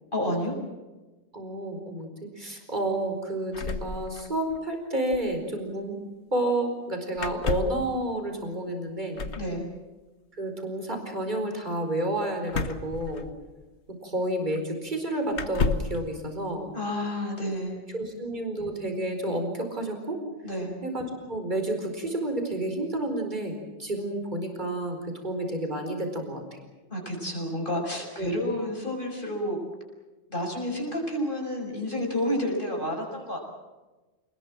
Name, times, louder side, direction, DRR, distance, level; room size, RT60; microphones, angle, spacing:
voice 1, 0.1-0.5 9.3-9.7 16.7-17.8 20.4-20.8 26.9-29.6 30.3-33.4, left 1 dB, 45° left, 1 dB, 6.5 m, -30 dB
voice 2, 1.3-2.1 2.4-6.0 6.3-9.3 10.4-13.3 14.0-16.7 17.9-20.2 20.8-26.6 28.2-28.3, right 1 dB, 40° right, 4 dB, 4.9 m, -30 dB
sound 1, 3.5-4.6 4.9-5.0 5.1-5.3 7.2-7.9 9.1-9.5 12.5-13.6 14.5-14.6 15.3-16.0, left 4 dB, 75° left, 1.6 m, -31 dB
28.0 x 20.5 x 7.5 m, 1.2 s
omnidirectional pair, 1.2 m